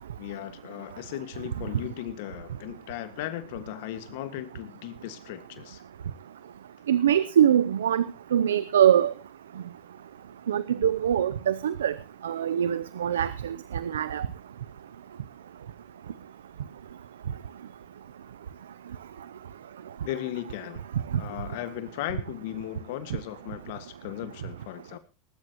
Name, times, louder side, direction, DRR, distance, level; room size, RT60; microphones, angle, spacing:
voice 1, 0.0-5.8 20.0-20.8 21.2-25.0, left 14 dB, 70° left, 11 dB, 1.7 m, -37 dB
voice 2, 6.9-8.0 8.3-9.1 10.5-11.9 12.2-14.3, right 9 dB, 90° right, 16 dB, 0.6 m, -23 dB
20.0 x 12.5 x 3.0 m, 0.30 s
hypercardioid pair, 95°, 0 cm